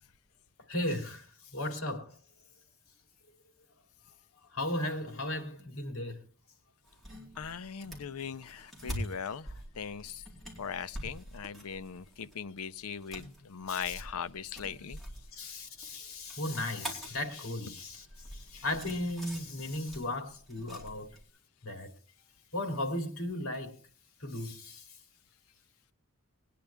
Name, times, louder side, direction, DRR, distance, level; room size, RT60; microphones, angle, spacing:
voice 1, 0.7-2.2 4.5-6.2 13.7-13.9 15.3-21.1 21.6-21.9 22.5-23.7 24.2-25.0, left 1 dB, 65° left, 2.9 m, -36 dB
sound 1, 6.8-21.2, equal, ahead, 4.1 m, -46 dB
voice 2, 7.4-10.2 10.6-15.0, left 7 dB, 85° left, 0.6 m, -39 dB
21.0 x 10.0 x 3.5 m
head